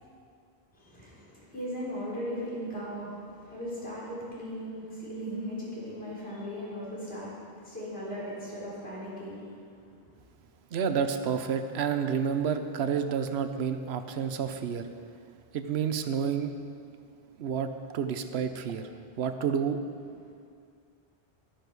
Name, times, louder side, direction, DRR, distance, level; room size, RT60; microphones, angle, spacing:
voice 1, 0.7-10.1 20.2-20.3, equal, 75° left, -7 dB, 4.1 m, -38 dB
voice 2, 10.7-14.9 15.5-16.5 17.4-18.9 19.2-19.8, right 7 dB, 90° right, 8 dB, 0.9 m, -29 dB
12.0 x 10.0 x 4.7 m, 2.2 s
omnidirectional pair, 1.0 m